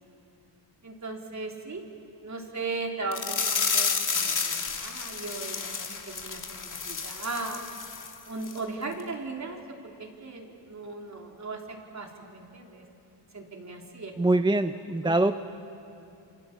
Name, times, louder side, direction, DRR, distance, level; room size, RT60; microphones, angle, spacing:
voice 1, 0.8-1.8 2.2-7.6 8.3-12.9 13.3-14.6 15.0-15.4, right 3 dB, 35° right, 2 dB, 3.5 m, -38 dB
sound 1, 3.1-8.1 8.4-8.6 9.0-9.1, left 5 dB, 40° left, 2.2 m, -31 dB
voice 2, 14.2-15.4, right 2 dB, 10° right, 9 dB, 0.6 m, -24 dB
27.5 x 25.0 x 7.3 m, 2.7 s
cardioid pair, 90°, 48 cm